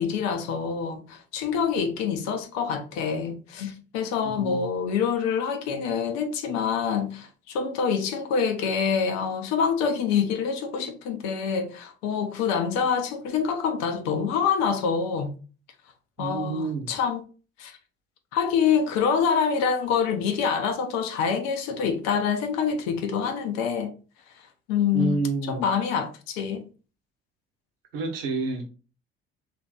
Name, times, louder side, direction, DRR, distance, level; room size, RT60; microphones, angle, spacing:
voice 1, 0.0-15.3 16.2-17.2 17.6-17.8 18.3-23.9 24.7-26.6, left 6 dB, 55° left, 0.8 m, -26 dB
voice 2, 4.2-4.6 16.2-16.9 24.9-25.6 27.9-28.7, right 4 dB, 70° right, 0.9 m, -29 dB
3.3 x 2.7 x 3.8 m
figure-of-eight pair, 55°, 31 cm